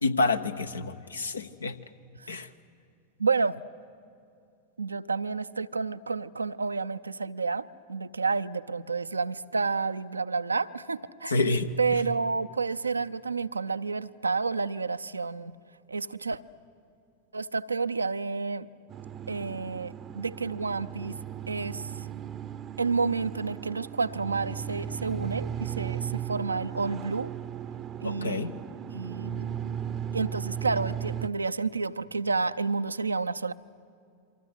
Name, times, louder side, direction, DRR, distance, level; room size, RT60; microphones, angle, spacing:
voice 1, 0.0-1.8 2.3-2.5 11.3-11.7 28.0-28.5, left 3 dB, 75° left, 10 dB, 1.1 m, -28 dB
voice 2, 3.2-3.6 4.8-11.4 11.8-15.5 15.9-16.4 17.3-18.7 19.3-21.2 21.5-21.8 22.8-27.3 28.0-28.5 28.9-29.5 30.1-33.5, right 4 dB, 80° right, 12 dB, 0.6 m, -30 dB
sound 1, 18.9-31.3, right 9 dB, 30° right, 0.7 m, -36 dB
27.5 x 24.5 x 8.2 m, 2.5 s
figure-of-eight pair, 90°, 0 cm